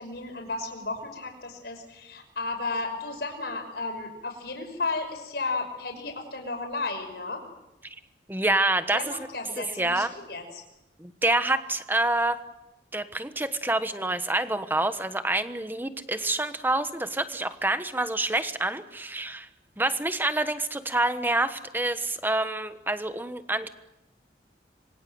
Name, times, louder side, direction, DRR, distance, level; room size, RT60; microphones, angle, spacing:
voice 1, 0.0-7.4 8.9-10.6, left 3 dB, 65° left, 4 dB, 5.9 m, -33 dB
voice 2, 8.3-9.1 9.8-10.1 11.0-12.4 12.9-19.5 19.8-23.7, right 2 dB, 10° right, 10 dB, 1.3 m, -27 dB
26.5 x 23.5 x 7.9 m, 0.91 s
head